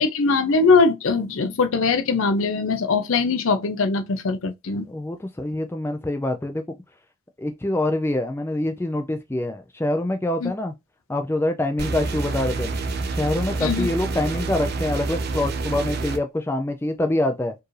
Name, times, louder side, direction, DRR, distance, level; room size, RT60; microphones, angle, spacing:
voice 1, 0.0-4.9 10.4-10.5 13.6-13.9, left 4 dB, 65° left, 0.6 m, -21 dB
voice 2, 4.9-6.6 7.4-10.7 11.1-12.7 13.1-17.5, left 1 dB, 10° left, 0.3 m, -25 dB
sound 1, 11.8-16.2, right 3 dB, 45° right, 0.5 m, -28 dB
4.5 x 2.6 x 3.1 m
head